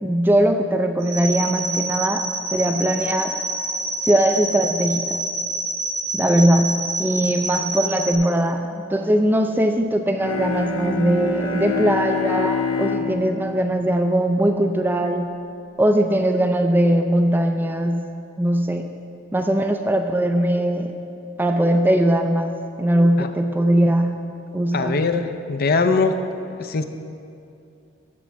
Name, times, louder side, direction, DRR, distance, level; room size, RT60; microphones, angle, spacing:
voice 1, 0.0-2.3 2.5-3.3 4.0-5.2 6.1-15.3 15.8-18.1 18.4-18.9 19.3-21.0 21.4-24.2 24.5-25.1, right 1 dB, 10° right, 5 dB, 0.4 m, -20 dB
sound 1, 1.0-8.1, right 2 dB, 75° right, 1.6 m, -27 dB
Bowed string instrument, 10.1-15.0, left 5 dB, 85° left, 0.9 m, -27 dB
voice 2, 24.7-26.2 26.6-26.8, left 4 dB, 45° left, 8 dB, 0.5 m, -21 dB
13.5 x 4.6 x 6.2 m, 2.6 s
head